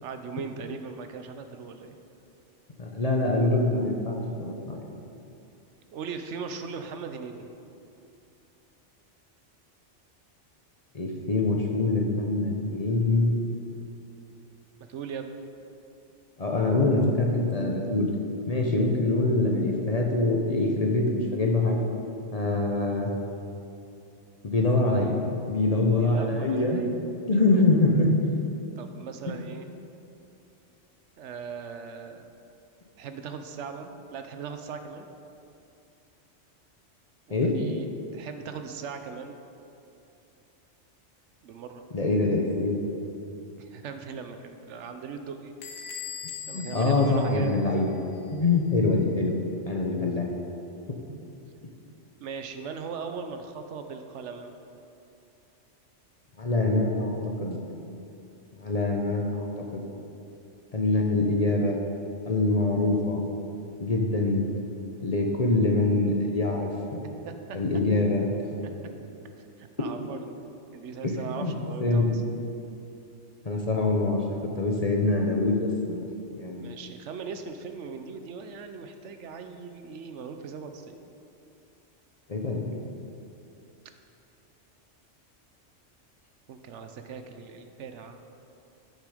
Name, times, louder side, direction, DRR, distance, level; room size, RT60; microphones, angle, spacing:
voice 1, 0.0-2.0 5.9-7.5 14.9-15.3 26.0-26.9 27.3-27.8 28.8-29.7 31.2-32.3 33.0-35.1 37.3-39.4 41.4-41.8 43.6-45.5 45.8-46.0 46.5-47.5 52.2-54.6 67.2-67.3 68.8-68.9 69.6-70.3 70.7-72.2 76.6-81.0 86.5-88.2, right 5 dB, 75° right, 7 dB, 1.0 m, -39 dB
voice 2, 2.8-4.8 10.9-13.3 16.4-18.1 18.5-21.8 22.3-23.1 24.4-25.2 25.5-26.8 27.3-28.1 29.3-29.4 37.3-37.6 41.9-42.9 46.5-47.9 48.3-49.3 49.7-50.3 56.4-57.6 58.6-59.8 60.7-61.8 62.3-63.2 63.8-64.5 65.0-67.0 67.5-68.6 71.0-71.5 71.8-72.1 73.4-76.0 76.4-76.7 82.3-82.6, left 2 dB, 35° left, 1 dB, 0.8 m, -24 dB
Bell / Door, 45.6-48.1, left 7 dB, 75° left, 1.2 m, -41 dB
9.9 x 6.6 x 4.9 m, 2.7 s
omnidirectional pair, 1.2 m